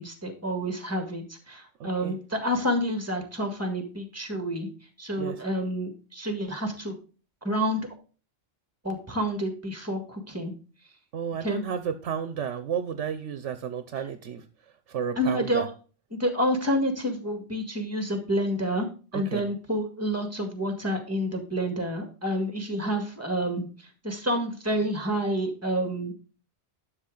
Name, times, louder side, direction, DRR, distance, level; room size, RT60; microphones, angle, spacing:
voice 1, 0.0-4.7 5.0-7.0 7.4-7.8 8.8-10.5 11.4-11.6 15.2-15.7 16.1-18.9 19.1-26.1, equal, 10° right, 6 dB, 1.8 m, -29 dB
voice 2, 1.8-2.2 5.2-5.4 11.1-14.4 14.9-15.7 19.1-19.4, right 7 dB, 75° right, 11 dB, 1.1 m, -32 dB
11.5 x 6.5 x 3.9 m, 0.37 s
omnidirectional pair, 1.2 m